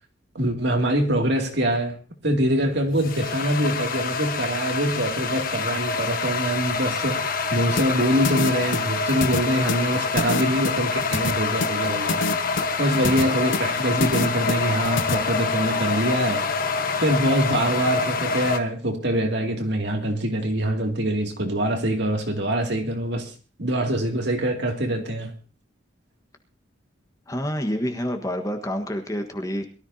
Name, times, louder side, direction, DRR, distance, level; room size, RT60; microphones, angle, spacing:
voice 1, 0.3-2.0 2.2-7.2 7.5-12.2 12.8-16.4 17.0-23.3 23.6-25.3, right 1 dB, 60° right, 2.5 m, -24 dB
sound 1, 2.4-18.6, left 4 dB, 45° left, 1.3 m, -26 dB
sound 2, 7.8-15.1, left 3 dB, 80° left, 1.0 m, -27 dB
voice 2, 27.3-29.7, equal, 15° left, 1.4 m, -28 dB
22.5 x 13.5 x 2.8 m
head